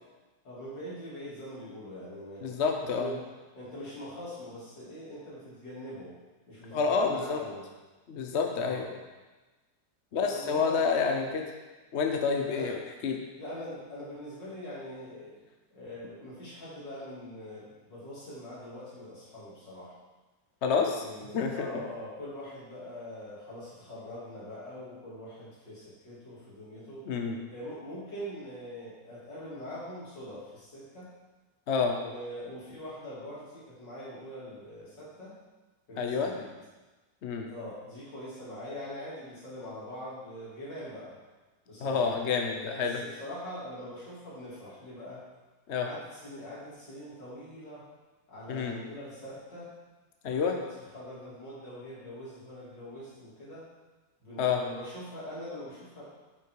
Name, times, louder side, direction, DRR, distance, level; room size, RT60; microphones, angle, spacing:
voice 1, 0.4-2.5 2.8-3.2 3.5-6.1 6.5-7.7 8.6-8.9 10.1-11.3 12.4-12.7 13.4-15.4 15.7-20.0 21.0-27.1 27.5-31.1 31.9-35.4 35.9-36.5 37.5-41.2 41.7-42.1 42.7-45.3 45.8-47.8 48.3-49.7 50.3-50.7 50.9-53.7 54.2-56.0, equal, 75° left, -8 dB, 4.0 m, -43 dB
voice 2, 2.4-3.1 6.7-7.4 8.1-8.9 10.1-11.4 11.9-13.2 20.6-21.0 21.3-21.7 27.1-27.4 31.7-32.0 36.0-36.3 37.2-37.5 41.8-43.0 45.7-45.9 48.5-48.7 50.2-50.6 54.4-54.6, left 5 dB, 50° left, 3 dB, 0.9 m, -28 dB
9.4 x 5.9 x 4.7 m, 1.2 s
omnidirectional pair, 1.9 m